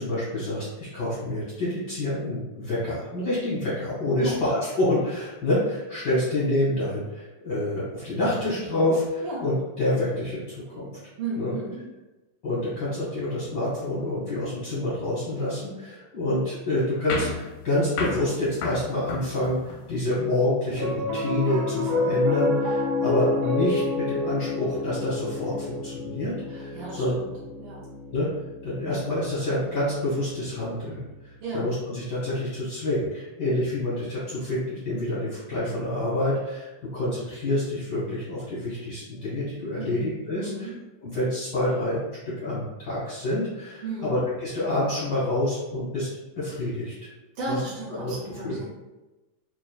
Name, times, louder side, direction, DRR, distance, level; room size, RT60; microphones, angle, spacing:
voice 1, 0.0-10.9 11.4-11.5 12.4-27.2 28.1-28.3 28.6-40.0 40.3-40.5 41.0-46.1 46.3-47.1 47.5-47.6 48.0-48.1 48.4-48.6, left 1 dB, 70° left, -10 dB, 1.0 m, -27 dB
voice 2, 11.2-11.8 26.5-27.3 27.6-27.8 31.4-31.7 39.7-40.8 43.8-44.2 47.3-48.6, right 2 dB, 80° right, -8 dB, 1.2 m, -34 dB
sound 1, 17.1-20.0, left 4 dB, 85° left, 2.2 m, -33 dB
Piano, 20.7-31.2, left 3 dB, 60° right, 1.6 m, -29 dB
5.8 x 2.2 x 2.3 m, 1.1 s
omnidirectional pair, 3.7 m